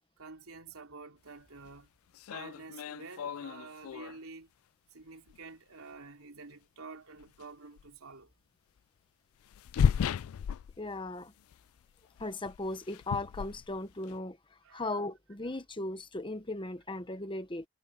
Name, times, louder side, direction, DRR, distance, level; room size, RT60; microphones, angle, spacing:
voice 1, 0.2-1.9 2.3-4.5 4.9-8.3 14.6-14.9, right 4 dB, 80° right, 3.4 m, -49 dB
sound 1, 1.6-1.7 2.1-4.2 5.3-5.4 7.2-7.4 7.8-7.9 9.4-11.2 11.5-11.8 12.2-14.2, left 7 dB, 75° left, 0.3 m, -34 dB
voice 2, 10.8-11.3 12.2-14.4 14.7-17.6, left 2 dB, 25° left, 1.1 m, -37 dB
head